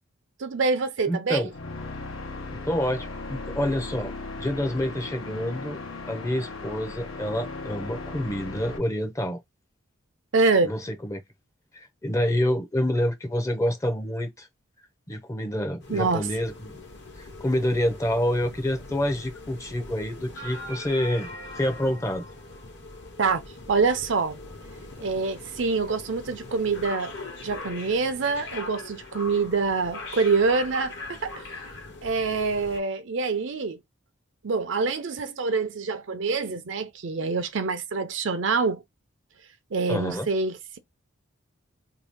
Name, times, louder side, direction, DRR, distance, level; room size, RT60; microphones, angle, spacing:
voice 1, 0.4-1.5 10.3-10.7 15.9-16.3 23.2-23.4 23.7-24.4 25.0-27.1 27.4-31.4 32.0-33.8 34.4-38.8 39.7-40.8, right 4 dB, 65° right, 0.6 m, -25 dB
voice 2, 1.1-1.5 2.5-4.1 4.4-5.8 6.0-9.4 10.6-11.2 11.7-14.5 15.1-16.8 17.2-21.3 21.6-22.2 39.9-40.3, left 1 dB, 15° left, 0.6 m, -27 dB
sound 1, 1.5-8.8, left 3 dB, 85° left, 1.0 m, -37 dB
sound 2, 15.8-32.8, left 2 dB, 60° left, 1.0 m, -41 dB
2.8 x 2.7 x 3.5 m
head